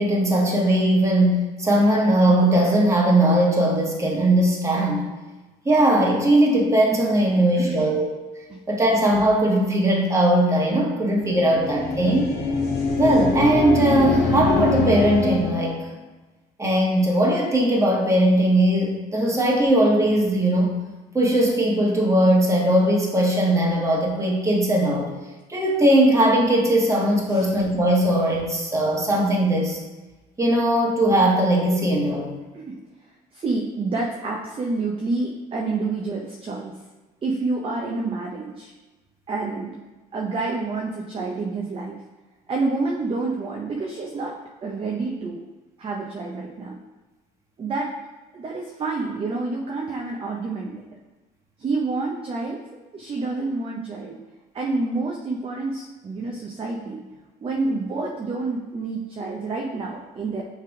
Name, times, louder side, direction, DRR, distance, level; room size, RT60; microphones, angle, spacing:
voice 1, 0.0-5.1 5.6-8.1 8.7-12.3 13.0-15.8 16.6-20.7 21.1-25.1 25.5-29.8 30.4-32.3, right 1 dB, 15° right, -2 dB, 1.4 m, -19 dB
voice 2, 7.6-7.9 8.5-8.6 27.3-27.5 32.5-32.7 33.3-36.8 37.2-38.7 39.3-39.7 40.1-42.0 42.5-44.3 44.6-45.5 45.8-46.8 47.6-47.9 48.3-50.8 51.6-52.6 52.9-54.2 54.5-57.0 57.4-60.4, right 3 dB, 35° right, 0 dB, 0.6 m, -28 dB
sound 1, 11.2-15.8, left 3 dB, 70° left, 1.4 m, -23 dB
5.8 x 3.4 x 4.8 m, 1.2 s
cardioid pair, 110°, 17 cm